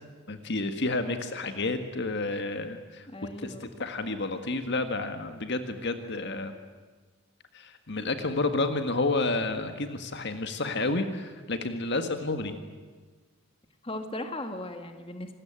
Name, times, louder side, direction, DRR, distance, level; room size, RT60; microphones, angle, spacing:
voice 1, 0.3-3.1 3.6-6.5 7.5-12.5, left 2 dB, 50° left, 8 dB, 1.7 m, -30 dB
voice 2, 3.1-3.7 12.4-12.6 13.8-15.3, left 1 dB, 25° left, 7 dB, 2.0 m, -38 dB
26.5 x 20.0 x 8.9 m, 1.4 s
head